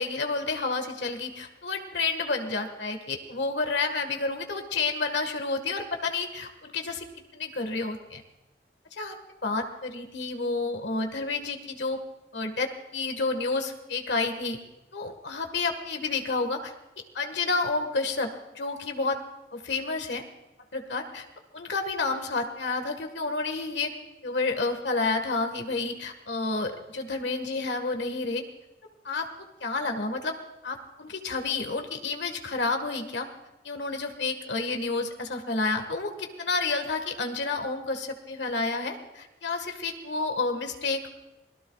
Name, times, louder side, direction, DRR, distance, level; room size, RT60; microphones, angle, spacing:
voice 1, 0.0-7.0 7.3-8.2 9.0-9.1 9.4-12.0 12.3-14.6 14.9-16.7 17.1-18.3 18.5-19.2 19.5-20.2 20.7-21.2 21.5-23.9 24.2-28.4 29.0-30.4 30.6-33.3 33.6-41.1, left 3 dB, 90° left, 5 dB, 1.6 m, -30 dB
26.0 x 18.5 x 2.4 m, 0.99 s
head